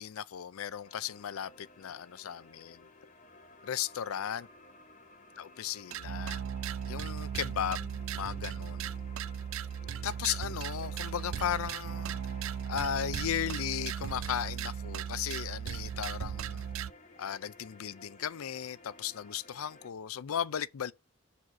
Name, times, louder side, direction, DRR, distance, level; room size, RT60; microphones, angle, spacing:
voice 1, 0.0-2.9 3.6-4.5 5.4-6.4 6.9-8.9 10.0-12.2 12.7-16.7 17.2-20.9, left 9 dB, 90° left, 0.4 m, -36 dB
sound 1, 0.8-19.9, left 3 dB, 35° left, 0.9 m, -56 dB
sound 2, 5.9-16.9, right 8 dB, 70° right, 0.4 m, -37 dB
6.2 x 4.1 x 5.8 m
head